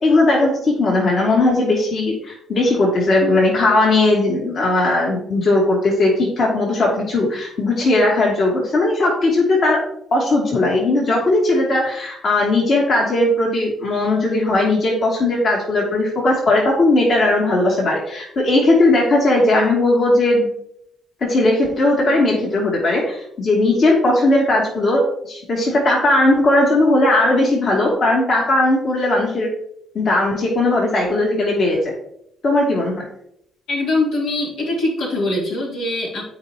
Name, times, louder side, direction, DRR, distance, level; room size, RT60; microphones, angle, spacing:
voice 1, 0.0-9.8 10.1-20.5 21.2-29.5 29.9-31.9 32.4-33.1, left 2 dB, 55° left, -2 dB, 2.5 m, -17 dB
voice 2, 33.7-36.2, left 2 dB, 85° left, -4 dB, 3.3 m, -22 dB
13.0 x 4.9 x 2.9 m, 0.74 s
cardioid pair, 90°, 0 cm